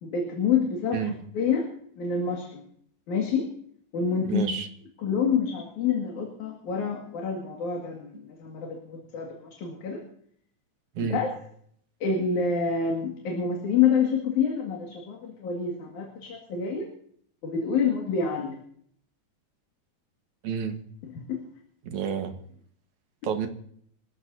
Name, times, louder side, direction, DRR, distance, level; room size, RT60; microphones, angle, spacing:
voice 1, 0.0-1.7 2.0-2.7 3.1-3.5 3.9-4.5 5.0-10.0 11.0-11.3 12.0-16.9 17.4-18.6 21.3-21.4, left 6 dB, 75° left, 0 dB, 3.5 m, -27 dB
voice 2, 4.2-4.7 11.0-11.2 20.4-20.8 21.8-22.3 23.2-23.5, right 7 dB, 75° right, 6 dB, 2.8 m, -29 dB
25.5 x 15.0 x 2.7 m, 0.63 s
omnidirectional pair, 3.5 m